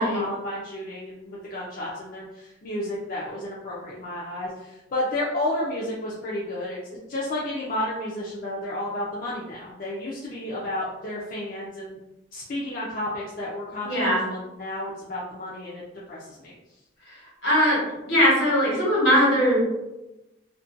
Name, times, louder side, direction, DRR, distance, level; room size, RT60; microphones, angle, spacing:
voice 1, 0.0-6.8 7.1-12.0 12.3-15.8 16.1-16.5, left 1 dB, 45° left, -7 dB, 0.4 m, -32 dB
voice 2, 13.8-14.2 17.4-17.8 18.1-19.7, equal, 75° left, -5 dB, 1.1 m, -20 dB
2.5 x 2.2 x 2.5 m, 0.99 s
head